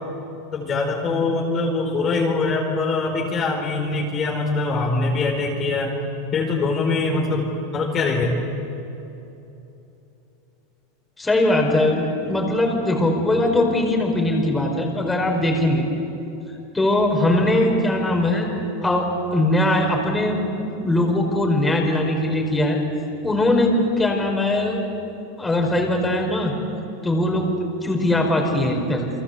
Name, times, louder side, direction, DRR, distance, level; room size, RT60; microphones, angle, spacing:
voice 1, 0.5-5.9 6.3-8.4, left 3 dB, 30° left, 0 dB, 4.3 m, -23 dB
voice 2, 11.2-15.9 16.7-18.5 18.8-22.8 23.2-24.8 25.4-26.5 27.0-27.5 27.8-29.1, left 1 dB, 10° left, 1 dB, 5.2 m, -20 dB
29.5 x 23.5 x 8.3 m, 3.0 s
supercardioid pair, 125°, 0 cm